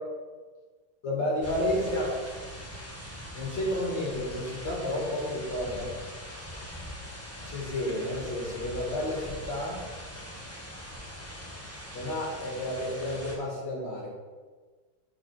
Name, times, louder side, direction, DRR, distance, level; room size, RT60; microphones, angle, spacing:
voice 1, 1.0-2.2 3.3-5.9 7.4-9.8 11.9-14.1, left 1 dB, 60° left, -3 dB, 2.4 m, -31 dB
sound 1, 1.4-13.4, equal, 10° left, 0.6 m, -42 dB
6.4 x 4.5 x 6.0 m, 1.4 s
omnidirectional pair, 2.3 m